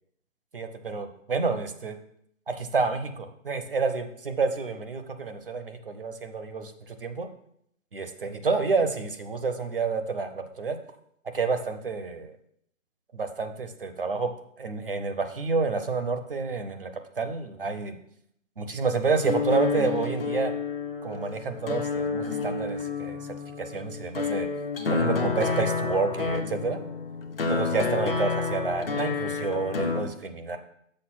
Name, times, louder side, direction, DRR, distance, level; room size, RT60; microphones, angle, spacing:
voice 1, 0.5-2.0 2.5-7.3 7.9-10.8 11.3-12.4 13.1-14.3 14.6-16.9 17.2-18.0 18.6-20.5 21.0-24.5 24.9-26.8 27.5-30.6, right 4 dB, 45° right, 8 dB, 0.8 m, -29 dB
sound 1, 19.2-30.0, left 4 dB, 45° left, 0.9 m, -29 dB
6.6 x 5.1 x 5.8 m, 0.72 s
hypercardioid pair, 180°, 40 cm